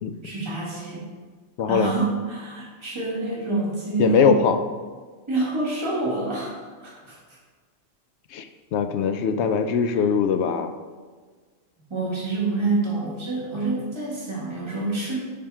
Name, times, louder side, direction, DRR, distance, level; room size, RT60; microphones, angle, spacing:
voice 1, 0.2-1.1 1.7-4.4 5.3-6.5 6.8-7.4 10.0-10.1 11.9-15.2, right 3 dB, 25° right, -5 dB, 1.7 m, -27 dB
voice 2, 1.6-1.9 4.0-4.6 8.3-10.8, left 6 dB, 70° left, 9 dB, 0.8 m, -21 dB
7.3 x 5.1 x 4.7 m, 1.5 s
omnidirectional pair, 1.3 m